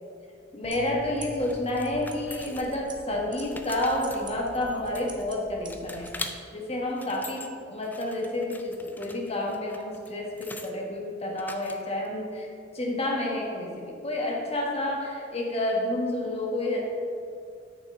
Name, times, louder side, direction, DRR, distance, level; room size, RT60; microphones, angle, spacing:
voice 1, 0.5-6.3 6.5-12.5 12.7-16.8, left 1 dB, 35° left, -1 dB, 1.3 m, -30 dB
sound 1, 0.6-6.2, right 2 dB, 25° right, 0.8 m, -45 dB
sound 2, 1.4-3.0 3.3-5.3 5.7-6.3 6.8-7.5 7.8-10.7 11.4-12.1, left 2 dB, 10° left, 0.4 m, -42 dB
8.6 x 6.5 x 3.7 m, 2.4 s
head